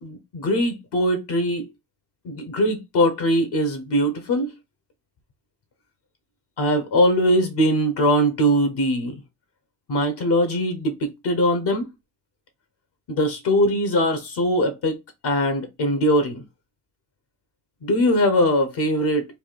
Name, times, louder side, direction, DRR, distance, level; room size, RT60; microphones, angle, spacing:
voice 1, 0.0-1.7 2.2-4.5 6.6-9.1 9.9-11.9 13.1-16.4 17.8-19.3, equal, 60° left, 1.0 m, -21 dB
3.6 x 2.2 x 4.1 m
supercardioid pair, 60°, 44 cm